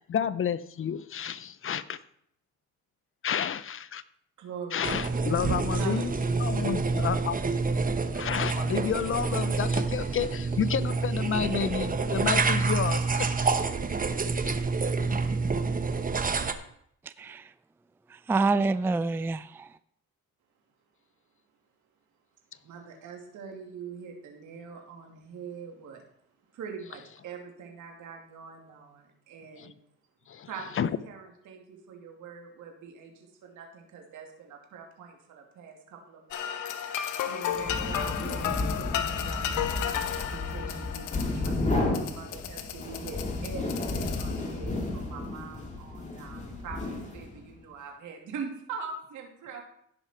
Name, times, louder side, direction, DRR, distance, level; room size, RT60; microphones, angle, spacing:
voice 1, 0.1-2.0 3.2-4.0 4.7-7.4 8.1-13.3 29.6-29.7 30.3-30.5 30.8-30.9, left 8 dB, 45° left, 15 dB, 0.7 m, -30 dB
voice 2, 4.4-5.4 5.7-6.7 6.9-7.1 22.6-26.0 26.5-29.8 30.5-36.4 36.8-49.6, right 5 dB, 80° right, 1 dB, 2.7 m, -43 dB
sound 1, 4.8-16.5, right 4 dB, 30° right, 1.0 m, -28 dB
voice 3, 18.3-19.7, right 3 dB, 10° right, 14 dB, 0.3 m, -26 dB
sound 2, 36.3-44.7, left 9 dB, 90° left, 1.0 m, -34 dB
sound 3, 37.5-47.5, left 2 dB, 25° left, 2.8 m, -33 dB
16.0 x 6.0 x 4.4 m, 0.69 s
cardioid pair, 90°, 30 cm